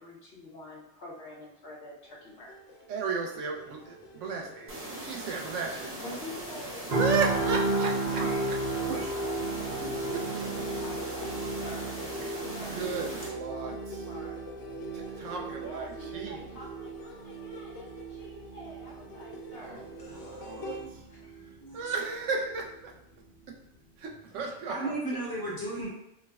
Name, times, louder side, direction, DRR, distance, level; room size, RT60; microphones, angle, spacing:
voice 1, 0.0-2.6 6.0-12.0 12.5-14.4 15.4-20.5 21.1-21.6, left 1 dB, 60° left, -4 dB, 0.9 m, -48 dB
sound 1, 2.0-20.8, equal, 85° left, 0.9 m, -47 dB
voice 2, 2.9-6.0 6.9-8.2 9.8-10.5 12.2-12.3 12.7-14.1 14.9-16.4 19.6-19.8 20.2-20.7 21.7-22.9 24.0-25.2, right 4 dB, 90° right, 1 dB, 0.9 m, -34 dB
sound 2, 4.7-13.3, right 1 dB, 15° right, 0.5 m, -40 dB
sound 3, 6.9-20.9 21.2-21.5, right 2 dB, 60° right, 1.1 m, -34 dB
voice 3, 20.1-21.2 21.6-21.8 24.7-25.9, right 1 dB, 20° left, -6 dB, 0.7 m, -36 dB
4.7 x 2.1 x 2.3 m, 0.84 s
omnidirectional pair, 1.2 m